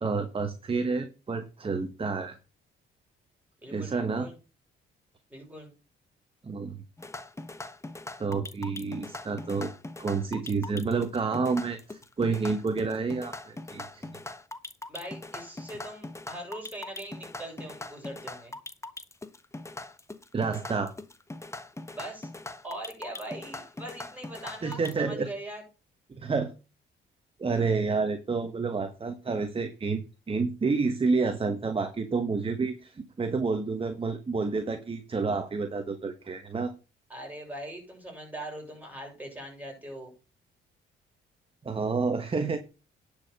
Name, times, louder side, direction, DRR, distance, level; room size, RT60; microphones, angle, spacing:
voice 1, 0.0-2.4 3.7-4.3 6.4-6.8 8.2-9.7 10.0-14.1 20.3-20.9 24.6-25.3 26.1-26.5 27.4-30.0 30.3-36.7 41.6-42.6, right 4 dB, 25° right, 8 dB, 1.2 m, -29 dB
voice 2, 3.6-4.4 5.3-5.7 14.9-18.5 21.9-22.3 22.6-25.6 37.1-40.1, right 1 dB, 10° right, 2 dB, 6.8 m, -41 dB
sound 1, 7.0-24.9, left 2 dB, 15° left, 1.0 m, -41 dB
10.5 x 5.0 x 6.5 m, 0.31 s
cardioid pair, 90°, 20 cm